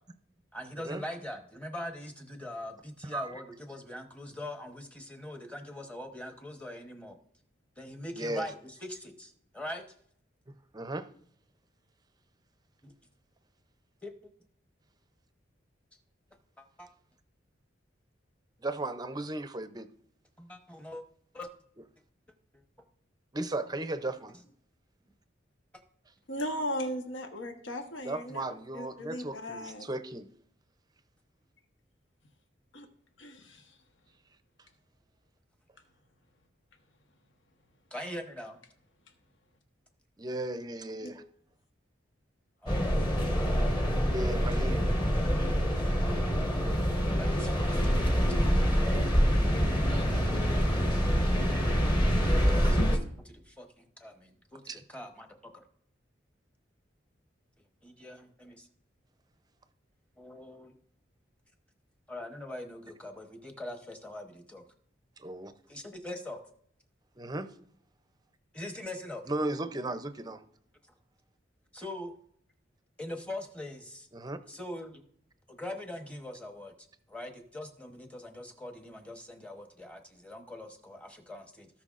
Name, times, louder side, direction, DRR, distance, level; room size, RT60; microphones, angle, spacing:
voice 1, 0.5-7.2 7.8-9.8 12.8-12.9 14.0-14.3 16.6-16.9 20.4-21.0 21.3-21.5 37.9-38.6 40.3-41.3 42.6-42.9 47.2-48.8 52.7-55.6 57.8-58.7 60.2-60.8 62.1-64.6 65.7-66.4 68.5-69.2 71.7-72.1 73.0-74.1 74.5-75.0 75.5-76.7 77.1-81.7, left 1 dB, 5° left, 5 dB, 0.9 m, -42 dB
voice 2, 3.0-3.3 8.2-8.5 10.7-11.1 18.6-19.9 23.3-24.4 28.0-30.3 40.2-41.2 44.1-44.9 54.7-54.8 65.2-65.5 67.2-67.6 69.3-70.4 74.1-74.4, right 2 dB, 20° right, 10 dB, 0.5 m, -36 dB
voice 3, 26.3-28.4 28.7-29.9 32.7-32.9 33.2-33.8 41.0-41.1, equal, 80° left, 4 dB, 1.2 m, -37 dB
sound 1, 42.7-53.0, equal, 25° left, 1.2 m, -26 dB
17.5 x 5.8 x 2.5 m, 0.66 s
head